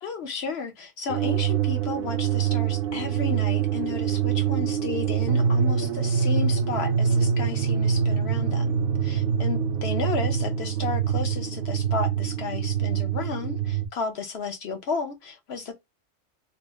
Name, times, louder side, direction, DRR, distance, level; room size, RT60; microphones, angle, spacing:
voice 1, 0.0-15.7, left 5 dB, 60° left, 1.0 m, -33 dB
sound 1, 1.1-13.9, right 7 dB, 65° right, 0.7 m, -25 dB
3.0 x 2.1 x 3.3 m
omnidirectional pair, 1.2 m